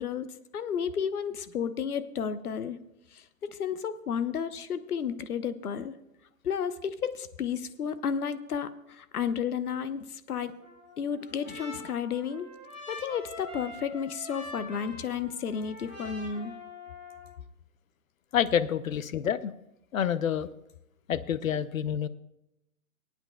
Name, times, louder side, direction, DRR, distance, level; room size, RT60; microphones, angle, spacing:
voice 1, 0.0-2.8 3.1-6.0 6.4-10.5 11.0-12.5 12.9-16.5, left 7 dB, 90° left, 12 dB, 1.0 m, -32 dB
Trumpet, 10.6-17.3, left 2 dB, 10° left, 0.7 m, -45 dB
voice 2, 18.3-19.5 19.9-20.5 21.1-22.1, left 9 dB, 65° left, 15 dB, 0.7 m, -28 dB
24.0 x 8.9 x 2.3 m, 0.86 s
hypercardioid pair, 175°, 43 cm